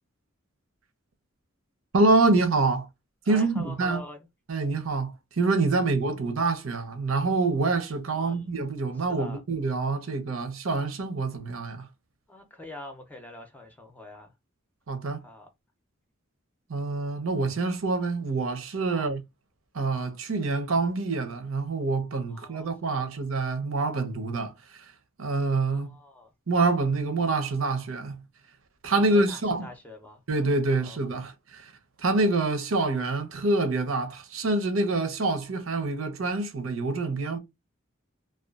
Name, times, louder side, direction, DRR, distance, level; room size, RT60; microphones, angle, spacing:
voice 1, 1.9-2.9 3.3-4.0 4.5-11.9 14.9-15.3 16.7-19.2 19.7-25.9 26.5-28.6 28.8-29.7 30.3-37.4, right 3 dB, 85° right, 0.7 m, -26 dB
voice 2, 3.2-4.2 8.1-8.5 9.1-9.4 12.3-14.3 15.2-15.5 18.9-19.1 22.3-23.1 25.7-26.3 29.0-30.2 30.7-31.0, left 2 dB, 10° left, 0.5 m, -45 dB
2.5 x 2.3 x 2.3 m
head